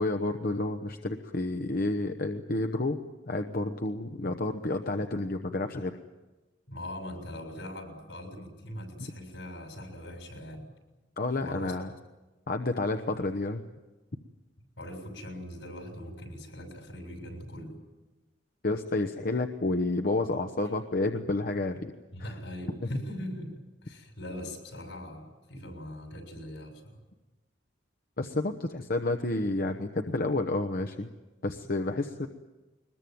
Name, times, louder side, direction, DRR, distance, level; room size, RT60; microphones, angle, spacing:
voice 1, 0.0-3.0 3.3-6.0 11.2-11.9 12.5-13.6 18.6-21.9 22.2-22.4 28.2-31.1 31.4-32.3, left 2 dB, 50° left, 6 dB, 1.0 m, -30 dB
voice 2, 6.7-10.7 11.4-11.8 14.8-17.8 22.1-27.0, left 1 dB, 80° left, 5 dB, 6.7 m, -41 dB
22.5 x 21.0 x 9.4 m, 1.2 s
head